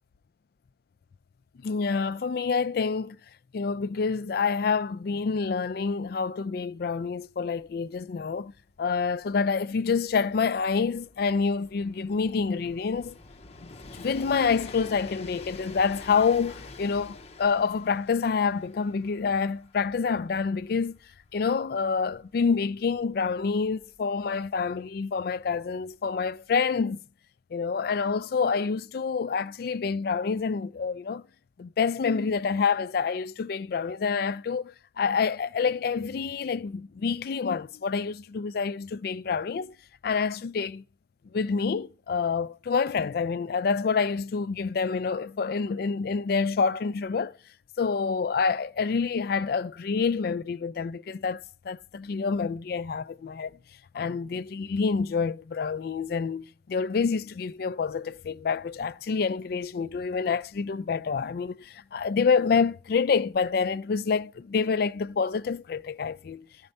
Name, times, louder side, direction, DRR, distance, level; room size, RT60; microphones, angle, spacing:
voice 1, 1.6-3.2 3.5-8.5 8.8-13.2 13.6-21.0 21.3-27.0 27.5-31.2 31.6-39.7 40.0-40.8 41.3-47.4 47.8-53.5 53.9-66.5, left 5 dB, 55° left, 0.3 m, -27 dB
Train, 7.6-7.7 7.9-24.5 25.5-25.6, left 3 dB, 35° left, 0.7 m, -48 dB
13.0 x 4.4 x 5.3 m
head